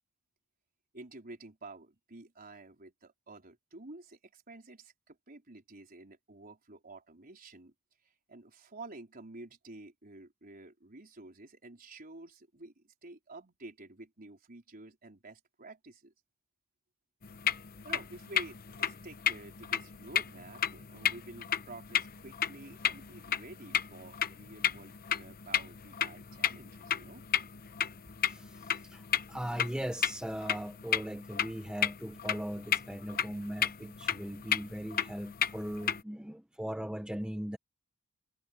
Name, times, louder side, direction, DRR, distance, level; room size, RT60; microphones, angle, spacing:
voice 1, 0.9-7.7 8.0-16.1 17.8-27.2, right 2 dB, 40° right, 4.1 m, -50 dB
sound 1, 17.2-36.0, left 9 dB, 40° left, 0.8 m, -34 dB
voice 2, 28.2-37.6, equal, 5° right, 0.6 m, -39 dB
head